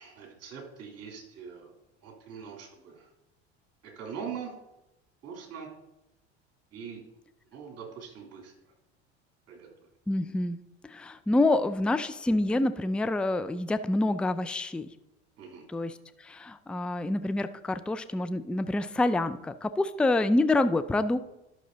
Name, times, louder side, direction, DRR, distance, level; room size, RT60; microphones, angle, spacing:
voice 1, 0.0-1.7 2.0-3.1 3.8-4.5 5.2-5.7 6.7-7.0 7.5-8.5 9.5-9.7 15.4-15.6, right 6 dB, 45° right, 1 dB, 3.4 m, -42 dB
voice 2, 10.1-10.6 10.8-14.9 15.7-21.2, left 2 dB, 5° left, 12 dB, 0.4 m, -27 dB
12.0 x 6.1 x 4.0 m, 0.93 s
hypercardioid pair, 75°, 34 cm